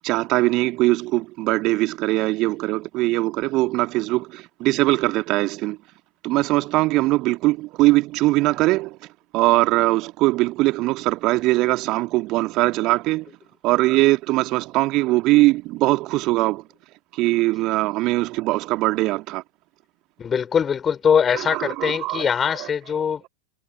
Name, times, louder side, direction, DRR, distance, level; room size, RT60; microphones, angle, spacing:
voice 1, 0.0-5.8 6.2-9.0 9.3-13.3 13.6-16.6 17.1-19.4 21.3-22.3 22.6-22.7, right 20 dB, 40° right, 2.0 m, -21 dB
voice 2, 20.2-23.2, left 7 dB, 20° left, 4.9 m, -22 dB
figure-of-eight pair, 90°, 0 cm